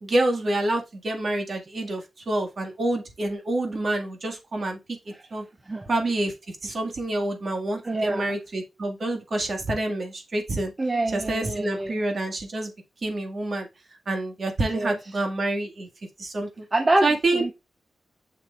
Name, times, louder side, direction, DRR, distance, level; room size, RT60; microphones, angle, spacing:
voice 1, 0.0-4.8 5.3-5.4 5.9-6.3 6.6-10.7 11.1-12.7 13.0-13.7 14.1-15.9 16.2-16.6 17.0-17.4, right 2 dB, 40° right, 2.0 m, -27 dB
voice 2, 7.8-8.4 10.8-12.0 14.6-15.0 16.7-17.5, right 2 dB, 20° right, 0.7 m, -26 dB
7.4 x 6.7 x 2.5 m
wide cardioid pair, 160°, 0 cm